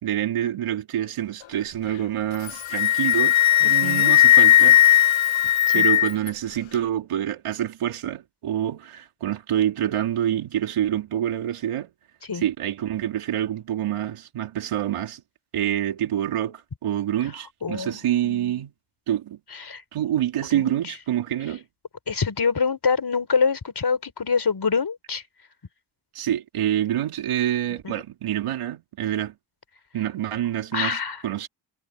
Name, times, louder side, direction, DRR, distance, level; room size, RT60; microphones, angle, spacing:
voice 1, 0.0-4.8 5.4-11.9 12.3-15.2 15.5-18.7 19.1-19.4 19.9-21.6 26.1-29.3 29.9-31.5, right 11 dB, 85° right, 2.8 m, -27 dB
Wind instrument woodwind instrument, 2.3-6.3, left 13 dB, 65° left, 0.9 m, -17 dB
voice 2, 3.8-4.1 5.7-5.9 12.3-12.4 17.6-18.5 19.5-19.8 20.5-20.7 22.1-25.2 27.8-28.0 30.7-31.2, left 5 dB, 50° left, 4.3 m, -25 dB
supercardioid pair, 45°, 50 cm